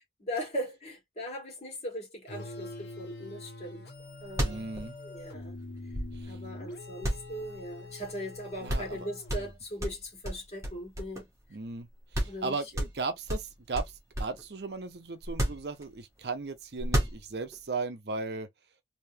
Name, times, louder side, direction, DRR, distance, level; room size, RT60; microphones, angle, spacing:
voice 1, 0.2-3.8 4.2-4.6 5.0-5.6 6.2-11.3 12.3-12.9, equal, 35° left, 2.0 m, -39 dB
sound 1, 2.3-9.7, left 2 dB, 65° left, 1.1 m, -44 dB
sound 2, 4.0-4.1 4.3-6.5 7.0-8.1 8.4-8.5 8.7-9.0 9.3-11.4 11.8-11.9 12.1-12.4 12.7-14.5 15.2-16.2 16.8-17.6, equal, 15° right, 1.3 m, -32 dB
voice 2, 4.4-4.9 6.1-6.4 8.6-9.0 11.5-13.9 14.2-18.5, right 4 dB, 65° right, 0.7 m, -36 dB
3.4 x 2.8 x 2.7 m
head